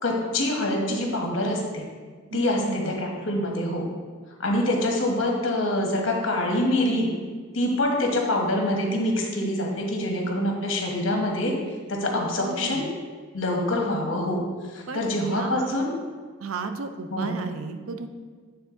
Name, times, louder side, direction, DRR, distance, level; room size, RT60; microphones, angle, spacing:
voice 1, 0.0-1.8 2.3-3.9 4.4-7.1 7.5-11.5 11.9-12.9 13.3-14.4 14.7-15.9 17.1-17.4, left 1 dB, 65° left, 0 dB, 1.2 m, -25 dB
voice 2, 2.3-3.0 12.4-12.9 14.9-15.7 16.4-18.1, right 4 dB, 90° right, 8 dB, 0.5 m, -33 dB
8.5 x 3.6 x 3.7 m, 1.5 s
head